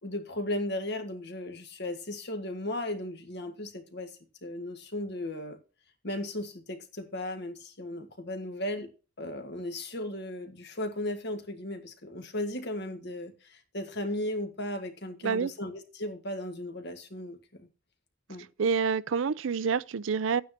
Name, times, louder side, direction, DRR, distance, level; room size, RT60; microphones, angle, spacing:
voice 1, 0.0-4.1 4.4-5.6 6.0-8.9 9.2-17.7 18.3-18.5, left 1 dB, 60° left, 1.7 m, -36 dB
voice 2, 18.6-20.4, right 6 dB, 75° right, 0.4 m, -27 dB
12.0 x 9.3 x 2.9 m
head